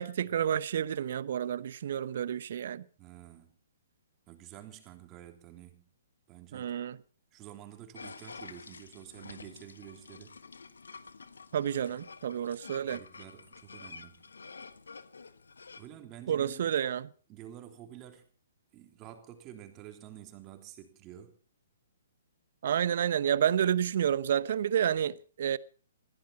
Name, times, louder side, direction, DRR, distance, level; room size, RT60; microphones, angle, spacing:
voice 1, 0.0-2.8 6.5-7.0 11.5-13.0 16.3-17.1 22.6-25.6, right 9 dB, 55° right, 0.9 m, -30 dB
voice 2, 3.0-3.5 4.3-5.9 6.3-6.8 7.3-10.3 12.9-14.3 15.8-16.7 17.3-18.2 18.7-21.4, right 12 dB, 25° right, 3.4 m, -49 dB
sound 1, 7.9-15.9, left 4 dB, 70° left, 1.4 m, -49 dB
21.5 x 15.5 x 4.2 m
figure-of-eight pair, 125°, 0 cm